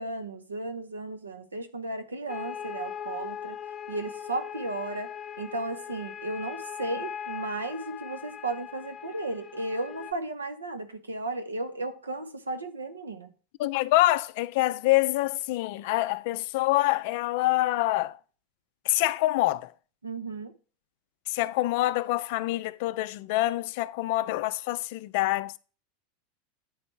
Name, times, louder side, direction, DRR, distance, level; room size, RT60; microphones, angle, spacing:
voice 1, 0.0-3.6 3.9-5.1 5.4-13.3 20.0-20.5, right 2 dB, 90° right, 0.7 m, -34 dB
sound 1, 2.3-10.1, left 8 dB, 30° left, 0.7 m, -39 dB
voice 2, 13.6-18.2 18.9-19.7 21.3-25.5, left 17 dB, 60° left, 0.3 m, -26 dB
9.3 x 3.2 x 4.5 m
hypercardioid pair, 85°, 0 cm